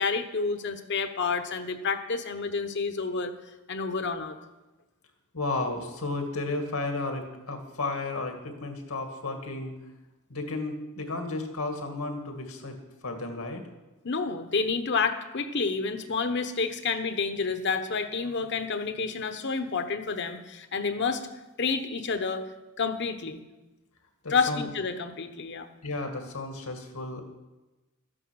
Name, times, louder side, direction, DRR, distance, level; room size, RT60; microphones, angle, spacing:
voice 1, 0.0-3.3 3.7-4.4 14.0-21.2 21.6-22.4 22.8-23.4 24.3-25.7, left 4 dB, 55° left, 8 dB, 1.1 m, -29 dB
voice 2, 5.3-9.7 10.3-12.8 13.0-13.6 24.2-24.6 25.8-27.2, left 2 dB, 80° left, 4 dB, 2.2 m, -33 dB
13.0 x 10.0 x 6.4 m, 1.1 s
head